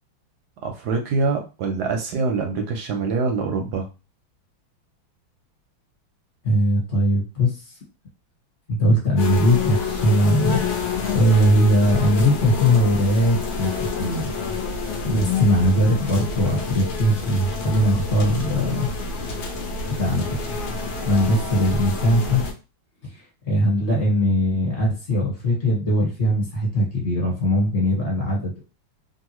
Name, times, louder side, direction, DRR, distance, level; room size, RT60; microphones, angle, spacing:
voice 1, 0.6-3.9, right 4 dB, 70° right, 3 dB, 1.0 m, -24 dB
voice 2, 6.4-7.7 8.7-10.6 11.1-14.3 15.0-18.9 20.0-20.4 20.9-22.4 23.1-28.6, equal, 40° left, -4 dB, 1.3 m, -20 dB
sound 1, 9.2-22.5, left 4 dB, 60° left, 0.8 m, -28 dB
3.1 x 2.4 x 2.9 m, 0.30 s
omnidirectional pair, 2.2 m